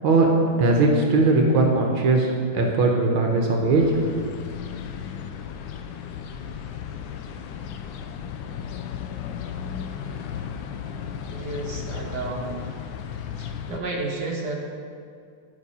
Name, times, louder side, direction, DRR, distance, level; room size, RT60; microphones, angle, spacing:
voice 1, 0.6-3.9 4.1-4.3, right 3 dB, 75° right, 1 dB, 1.7 m, -20 dB
sound 1, 3.8-13.8, left 7 dB, 75° left, 1.3 m, -35 dB
voice 2, 11.3-12.7 13.4-14.5, right 3 dB, 55° right, -2 dB, 1.8 m, -32 dB
9.5 x 5.5 x 5.5 m, 2.3 s
omnidirectional pair, 2.4 m